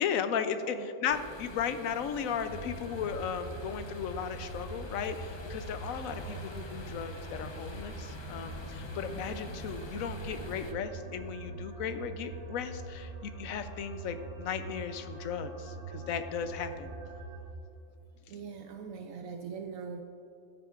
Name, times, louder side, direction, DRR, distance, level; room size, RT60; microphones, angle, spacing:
voice 1, 0.0-16.9, left 7 dB, 75° left, 9 dB, 1.0 m, -35 dB
sound 1, 1.1-10.7, left 2 dB, 45° left, 0.3 m, -46 dB
sound 2, 2.5-17.4, right 3 dB, 45° right, 1.3 m, -44 dB
voice 2, 9.1-9.6 18.3-20.0, right 5 dB, 75° right, 5 dB, 0.9 m, -42 dB
14.0 x 9.7 x 2.5 m, 2.7 s
omnidirectional pair, 1.5 m